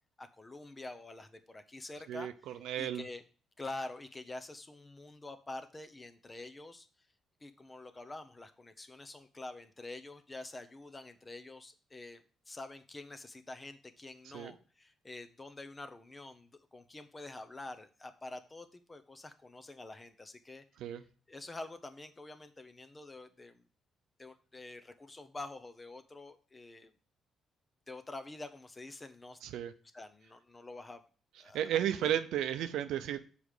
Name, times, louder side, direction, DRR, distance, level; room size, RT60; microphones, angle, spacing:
voice 1, 0.2-3.2 3.6-6.9 7.4-20.6 21.3-23.6 24.2-26.9 27.9-29.4 29.9-31.0 31.4-32.1, left 2 dB, 20° left, 9 dB, 0.8 m, -47 dB
voice 2, 2.1-3.0 14.3-14.5 20.8-21.0 29.4-29.7 31.5-33.2, right 11 dB, 85° right, 10 dB, 0.6 m, -33 dB
7.2 x 5.1 x 4.8 m, 0.39 s
cardioid pair, 90°, 0 cm